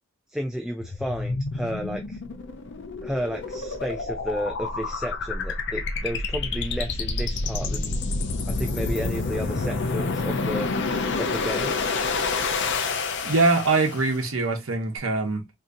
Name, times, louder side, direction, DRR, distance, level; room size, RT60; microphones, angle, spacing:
voice 1, 0.3-2.2 3.0-8.0 8.5-10.7 11.2-11.8, equal, ahead, 0.3 m, -32 dB
Energy Charging, 0.8-14.2, left 3 dB, 55° left, 0.6 m, -28 dB
voice 2, 13.2-15.5, right 3 dB, 75° right, 0.9 m, -23 dB
3.7 x 2.8 x 2.6 m
head